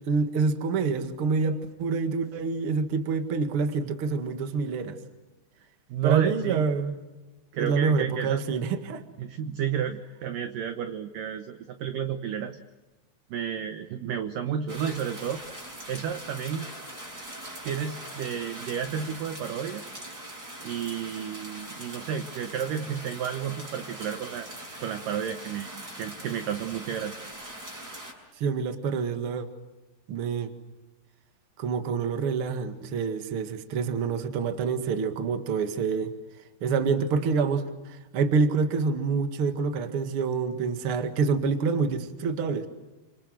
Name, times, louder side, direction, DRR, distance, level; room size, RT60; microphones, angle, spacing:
voice 1, 0.0-5.0 6.0-7.0 7.6-9.0 28.4-29.5 30.1-30.5 31.6-36.1 36.6-42.7, right 5 dB, 50° right, 7 dB, 1.7 m, -27 dB
voice 2, 5.9-6.7 7.5-8.4 9.2-12.6 13.3-15.4 15.9-16.7 17.6-19.8 20.6-24.5 24.8-25.7 26.0-27.2, right 8 dB, 80° right, 8 dB, 2.0 m, -31 dB
sound 1, 14.7-28.1, right 1 dB, 20° right, 5.9 m, -42 dB
28.5 x 26.0 x 7.8 m, 1.2 s
omnidirectional pair, 5.3 m